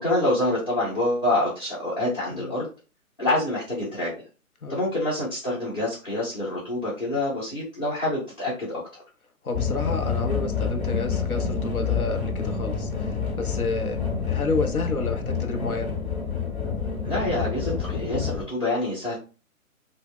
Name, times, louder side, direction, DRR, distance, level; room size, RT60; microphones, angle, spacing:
voice 1, 0.0-2.7 3.2-4.1 4.7-9.0 17.0-19.2, left 1 dB, 20° left, 0.7 m, -26 dB
voice 2, 9.4-14.0 14.3-15.9, left 3 dB, 85° left, 0.7 m, -30 dB
sound 1, 9.5-18.4, left 6 dB, 50° left, 1.0 m, -28 dB
2.2 x 2.1 x 3.5 m
figure-of-eight pair, 135°, 42 cm